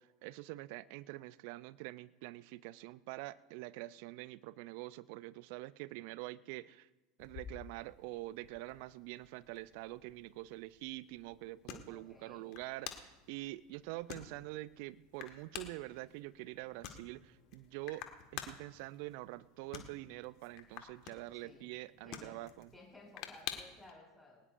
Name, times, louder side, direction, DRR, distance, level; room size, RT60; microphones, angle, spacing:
voice 1, 0.0-6.9 7.2-18.1 18.3-22.7, right 18 dB, 60° right, 18 dB, 0.5 m, -46 dB
sound 1, 7.2-23.9, left 10 dB, 55° left, 1.7 m, -51 dB
voice 2, 11.9-12.5 21.4-21.7 22.0-22.4 22.7-24.4, left 2 dB, 5° left, -3 dB, 7.2 m, -57 dB
21.5 x 19.0 x 2.6 m, 1.1 s
hypercardioid pair, 80°, 0 cm